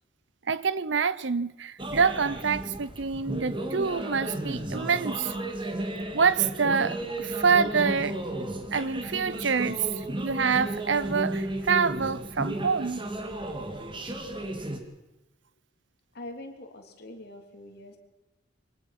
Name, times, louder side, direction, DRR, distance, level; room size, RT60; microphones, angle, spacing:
voice 1, 0.5-5.3 6.1-8.2 8.7-13.0 14.0-14.2, right 5 dB, 65° right, 0.7 m, -26 dB
sound 1, 1.8-14.8, right 1 dB, 25° right, 2.2 m, -34 dB
voice 2, 16.1-18.0, left 1 dB, 55° left, 3.1 m, -43 dB
24.0 x 18.0 x 6.0 m
head